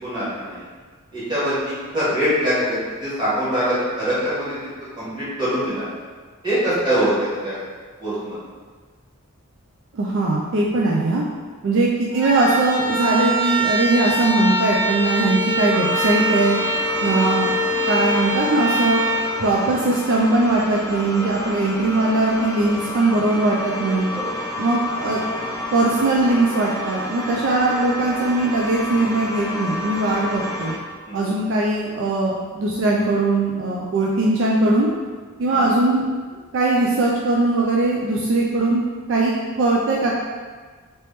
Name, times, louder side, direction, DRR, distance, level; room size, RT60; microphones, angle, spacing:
voice 1, 0.0-0.7 1.1-4.6 5.0-5.9 6.4-7.6 8.0-8.3 11.6-11.7 17.0-17.2 24.1-24.3 31.1-31.3 35.5-35.7, equal, 20° right, -12 dB, 1.5 m, -23 dB
voice 2, 9.9-11.2 11.6-16.6 17.0-17.5 17.9-19.0 19.4-24.1 24.6-25.2 25.7-30.7 31.1-34.9 35.4-36.0 36.5-38.8 39.1-40.1, right 2 dB, 55° right, -3 dB, 0.4 m, -20 dB
sound 1, 12.1-20.3, right 1 dB, 80° right, 1.0 m, -23 dB
sound 2, 15.7-30.8, left 1 dB, 15° left, 0.3 m, -30 dB
3.0 x 3.0 x 3.2 m, 1.5 s
head